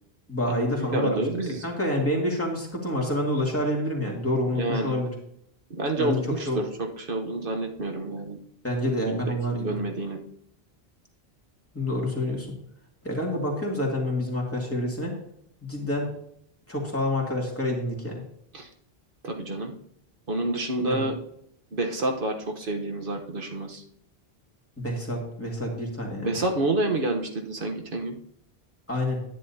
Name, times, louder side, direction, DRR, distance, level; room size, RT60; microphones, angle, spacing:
voice 1, 0.3-1.2 1.6-5.1 6.0-6.2 6.5-6.6 8.6-9.8 11.7-12.5 13.0-15.1 15.6-16.1 16.7-18.2 20.8-21.0 24.8-26.3 28.9-29.2, left 1 dB, 15° left, -2 dB, 2.4 m, -27 dB
voice 2, 0.9-1.6 4.5-4.9 5.7-8.4 9.1-10.2 18.5-18.7 19.2-19.7 20.3-21.2 21.7-23.8 26.2-28.2, right 2 dB, 60° right, 3 dB, 1.3 m, -28 dB
10.5 x 10.0 x 2.8 m, 0.72 s
omnidirectional pair, 1.1 m